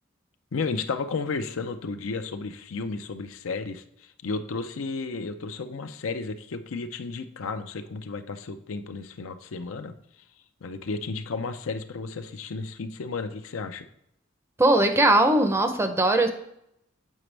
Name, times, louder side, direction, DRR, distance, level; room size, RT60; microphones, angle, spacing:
voice 1, 0.5-10.0 10.6-13.9, left 4 dB, 85° left, 9 dB, 0.5 m, -33 dB
voice 2, 14.6-16.3, right 1 dB, 15° right, 6 dB, 0.5 m, -20 dB
7.3 x 5.1 x 3.2 m, 0.77 s
head